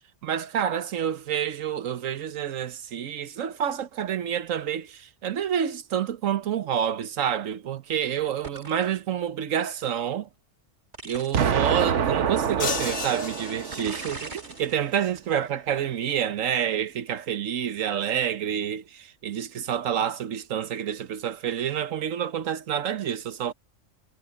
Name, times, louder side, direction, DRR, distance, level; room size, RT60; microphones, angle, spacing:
voice 1, 0.2-10.3 11.0-23.5, right 9 dB, 85° right, 1.3 m, -28 dB
sound 1, 8.4-9.0 10.9-11.5 12.4-12.5 13.7-14.8 15.2-15.5, right 2 dB, 35° right, 2.3 m, -40 dB
Explosion, 11.3-14.3, right 7 dB, 65° right, 1.3 m, -26 dB
sound 2, 12.6-14.4, left 5 dB, 90° left, 2.2 m, -33 dB
omnidirectional pair, 1.3 m